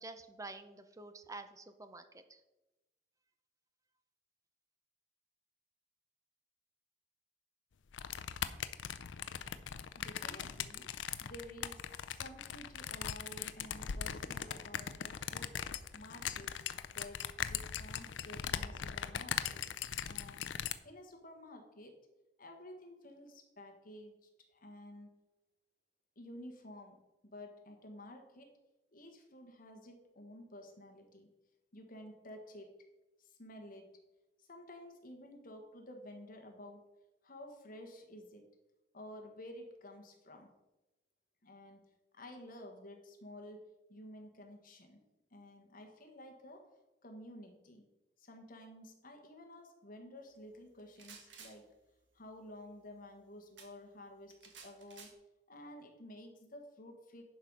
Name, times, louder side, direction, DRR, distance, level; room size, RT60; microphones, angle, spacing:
voice 1, 0.0-2.4, right 3 dB, 20° right, 9 dB, 0.6 m, -49 dB
sound 1, 7.9-20.7, left 8 dB, 80° left, 0.5 m, -40 dB
voice 2, 10.0-10.9 11.2-15.6 15.9-16.6 16.9-20.5 20.8-22.0 22.4-25.1 26.2-27.0 27.2-28.6 28.9-31.3 31.7-32.8 33.2-33.9 34.4-36.8 37.2-38.5 38.9-40.5 41.4-45.0 45.3-46.7 47.0-47.8 48.2-51.7 52.1-55.1 55.5-57.2, left 1 dB, 50° left, 4 dB, 1.4 m, -52 dB
sound 2, 50.8-51.6 53.6-53.7 54.3-55.1, right 6 dB, 70° right, 1.5 m, -54 dB
11.0 x 4.7 x 5.4 m, 1.0 s
head